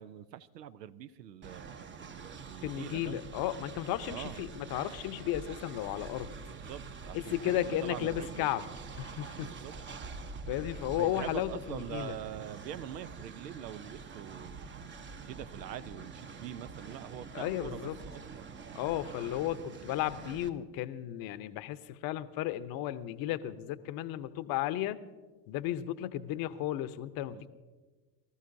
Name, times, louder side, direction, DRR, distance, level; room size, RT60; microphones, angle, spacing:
voice 1, 0.0-3.2 4.1-4.4 6.4-8.5 9.3-9.7 10.9-14.7 15.2-18.5 27.3-27.5, right 10 dB, 80° right, 15 dB, 0.7 m, -44 dB
Train, 1.4-20.5, right 4 dB, 25° right, 0.8 m, -46 dB
voice 2, 2.6-6.3 7.1-8.7 9.0-9.5 10.5-12.2 17.3-18.0 18.7-25.0 25.5-27.5, left 13 dB, 45° left, 13 dB, 0.8 m, -34 dB
24.0 x 13.5 x 2.7 m, 1.3 s
hypercardioid pair, 85°, 48 cm